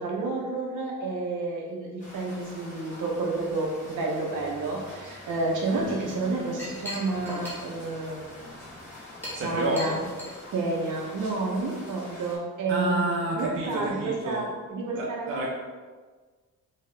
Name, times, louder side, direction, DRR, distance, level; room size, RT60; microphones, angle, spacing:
voice 1, 0.0-8.5 9.4-10.0 10.5-13.0 13.3-15.4, right 3 dB, 65° right, -2 dB, 0.8 m, -30 dB
sound 1, 2.0-12.4, left 2 dB, 20° left, 1.1 m, -46 dB
sound 2, 4.3-10.7 11.0-11.4 13.7-14.7, left 4 dB, 40° left, 1.2 m, -47 dB
Chink clink, 6.3-11.5, left 1 dB, 5° left, 0.7 m, -41 dB
voice 2, 9.3-10.0 12.7-14.5 14.9-15.5, right 2 dB, 40° right, -3 dB, 0.4 m, -29 dB
2.8 x 2.8 x 3.2 m, 1.4 s
wide cardioid pair, 165°, 33 cm